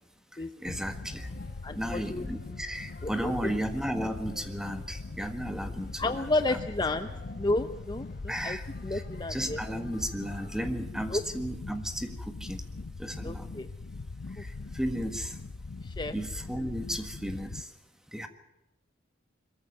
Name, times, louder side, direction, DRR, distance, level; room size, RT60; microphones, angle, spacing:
voice 1, 0.6-1.3 1.8-6.6 8.3-9.0 9.3-12.6 13.0-13.6 14.4-15.3 16.1-17.7 18.1-18.3, equal, 5° right, 7 dB, 1.6 m, -34 dB
sound 1, 0.7-17.6, left 3 dB, 90° left, 0.7 m, -41 dB
sound 2, 1.0-10.7, left 1 dB, 50° left, 4.4 m, -54 dB
voice 2, 1.6-2.3 3.0-3.5 6.0-7.1 7.4-8.6 8.8-9.6 11.1-11.2 13.2-13.7 14.4-14.5 15.8-16.1, left 2 dB, 25° left, 9 dB, 0.7 m, -31 dB
22.5 x 14.5 x 9.3 m, 0.91 s
head